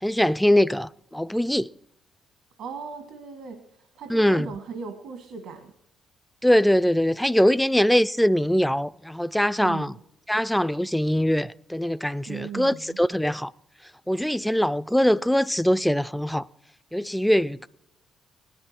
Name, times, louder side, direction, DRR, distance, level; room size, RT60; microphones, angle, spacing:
voice 1, 0.0-1.7 4.1-4.5 6.4-9.9 10.3-13.5 14.1-16.5 16.9-17.7, equal, 5° left, 0.5 m, -22 dB
voice 2, 2.6-5.7 9.6-10.0 12.3-13.0, right 6 dB, 80° right, 1.7 m, -38 dB
17.5 x 11.5 x 4.4 m
supercardioid pair, 60°, 0 cm